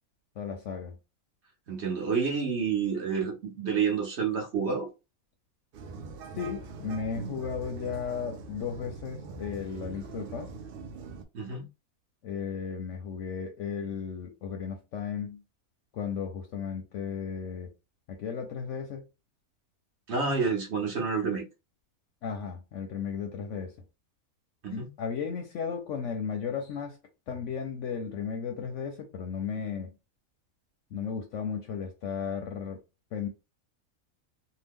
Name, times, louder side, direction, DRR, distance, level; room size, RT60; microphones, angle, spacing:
voice 1, 0.4-1.0 6.4-10.5 12.2-15.4 15.9-17.7 18.1-19.1 22.2-23.7 24.7-27.0 27.3-29.9 30.9-32.8 33.1-33.3, left 6 dB, 65° left, 0.8 m, -35 dB
voice 2, 1.7-4.9 11.3-11.7 20.1-21.4 24.6-24.9, right 5 dB, 55° right, 1.0 m, -29 dB
sound 1, 5.7-11.2, right 4 dB, 75° right, 0.5 m, -42 dB
2.8 x 2.2 x 3.5 m
omnidirectional pair, 1.5 m